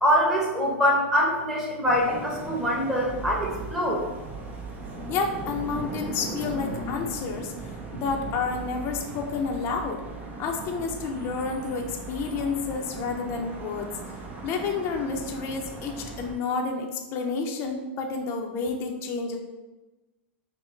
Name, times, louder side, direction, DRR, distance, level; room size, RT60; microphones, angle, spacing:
voice 1, 0.0-4.0, equal, 5° right, -4 dB, 1.2 m, -24 dB
sound 1, 1.9-16.4, right 3 dB, 25° right, 0.6 m, -38 dB
voice 2, 5.1-10.0 10.4-13.9 14.4-19.4, left 4 dB, 40° left, 2 dB, 0.5 m, -30 dB
5.5 x 2.1 x 3.2 m, 1.1 s
hypercardioid pair, 110°, 6 cm